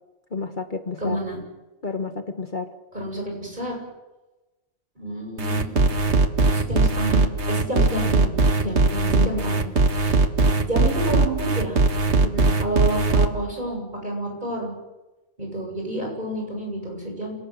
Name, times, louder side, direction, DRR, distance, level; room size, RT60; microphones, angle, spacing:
voice 1, 0.3-1.2 1.8-2.7 7.8-7.9 8.6-9.7 12.2-12.6, left 4 dB, 45° left, 7 dB, 1.5 m, -31 dB
voice 2, 1.0-1.4 2.9-3.8 5.0-5.9 6.5-8.3 8.6-8.8 9.1-9.5 9.9-10.2 10.6-11.8 12.6-14.7 15.4-17.3, right 1 dB, 40° right, 1 dB, 8.1 m, -29 dB
sound 1, 5.4-13.3, right 3 dB, 75° right, 1.9 m, -19 dB
28.0 x 19.0 x 8.0 m, 1.1 s
omnidirectional pair, 1.2 m